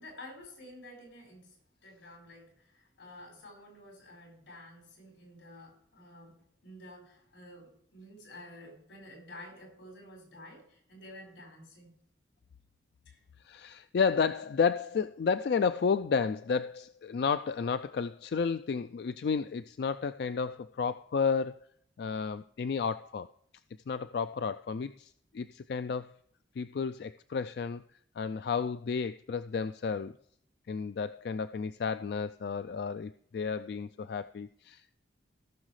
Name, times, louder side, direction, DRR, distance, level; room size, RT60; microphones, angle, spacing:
voice 1, 0.0-1.6 1.8-12.0 13.1-13.2, left 1 dB, 85° left, 1 dB, 4.5 m, -51 dB
voice 2, 13.4-21.7 22.0-23.3 23.9-26.1 26.6-27.8 28.2-30.1 30.7-35.0, left 5 dB, 60° left, 11 dB, 0.3 m, -32 dB
17.5 x 6.4 x 3.2 m, 0.68 s
head